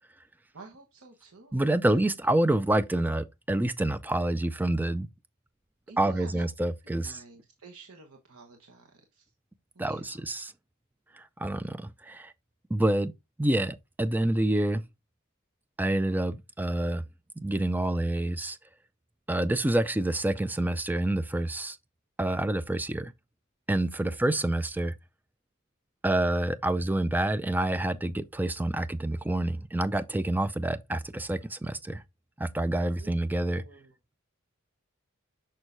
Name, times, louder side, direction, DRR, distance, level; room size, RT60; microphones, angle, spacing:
voice 1, 0.5-1.6 1.9-2.0 5.9-6.5 6.8-9.2 9.7-10.2 33.0-33.1 33.5-33.9, right 3 dB, 80° right, 1.1 m, -50 dB
voice 2, 1.5-5.1 6.0-7.2 9.8-10.5 11.4-12.3 12.7-13.1 13.4-14.8 15.8-17.0 17.4-18.6 19.3-21.8 22.2-23.1 23.7-24.9 26.0-32.0 32.4-33.6, right 1 dB, 10° right, 0.4 m, -27 dB
6.3 x 6.2 x 2.5 m
head